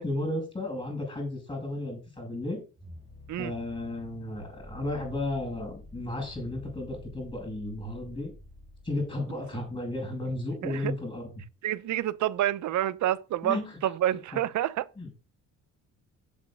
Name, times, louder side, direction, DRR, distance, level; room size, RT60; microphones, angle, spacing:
voice 1, 0.0-2.6 3.4-8.3 8.8-11.3 13.4-13.8 15.0-15.1, left 2 dB, 15° left, 6.7 m, -33 dB
sound 1, 2.8-10.0, left 2 dB, 20° right, 6.5 m, -49 dB
voice 2, 10.6-10.9 11.6-14.9, right 12 dB, 70° right, 0.8 m, -28 dB
7.6 x 7.5 x 6.2 m
cardioid pair, 90°, 30 cm